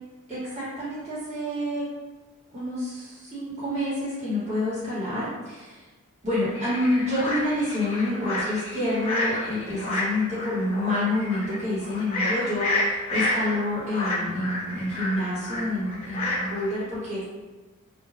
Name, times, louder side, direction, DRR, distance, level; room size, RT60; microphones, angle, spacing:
voice 1, 0.3-1.8 2.5-5.8 6.2-17.3, left 1 dB, 30° right, -11 dB, 1.0 m, -28 dB
sound 1, 6.5-16.7, left 2 dB, 30° left, 0.8 m, -30 dB
3.1 x 2.2 x 2.4 m, 1.2 s
head